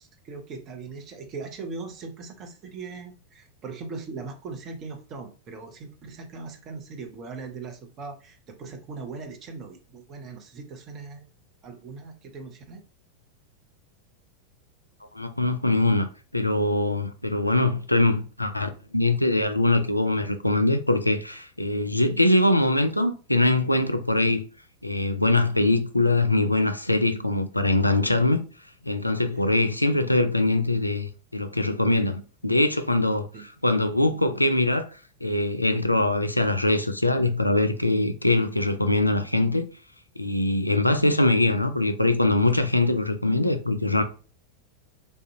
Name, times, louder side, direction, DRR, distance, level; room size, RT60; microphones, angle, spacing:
voice 1, 0.0-11.3 11.6-12.8 29.3-29.4 33.3-33.4, right 4 dB, 30° right, 0.8 m, -39 dB
voice 2, 15.1-24.4 24.8-28.4 28.8-33.3 33.6-34.9 35.2-39.7 40.2-44.0, left 2 dB, 85° left, 0.4 m, -23 dB
3.4 x 2.5 x 2.7 m
figure-of-eight pair, 90°, 0 cm